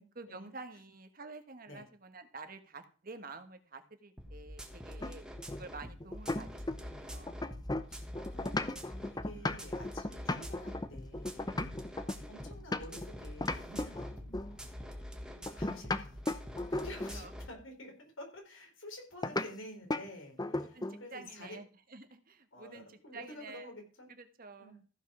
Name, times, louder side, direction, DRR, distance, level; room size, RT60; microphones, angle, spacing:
voice 1, 0.1-5.2 5.6-7.3 17.1-17.3 20.6-23.7 24.1-24.7, right 3 dB, 45° right, 8 dB, 1.3 m, -49 dB
sound 1, 4.2-17.5, equal, 5° right, 1.5 m, -46 dB
sound 2, 5.0-7.0 7.3-13.1 13.4-14.6 15.5-17.2 19.2-19.5 19.9-20.1 20.4-21.0, left 2 dB, 20° left, 0.6 m, -36 dB
voice 2, 7.9-11.6 12.3-14.8 15.5-16.2 16.7-21.6 22.5-24.1 24.6-24.8, left 1 dB, 80° left, 3 dB, 3.9 m, -50 dB
14.5 x 5.5 x 6.0 m, 0.39 s
head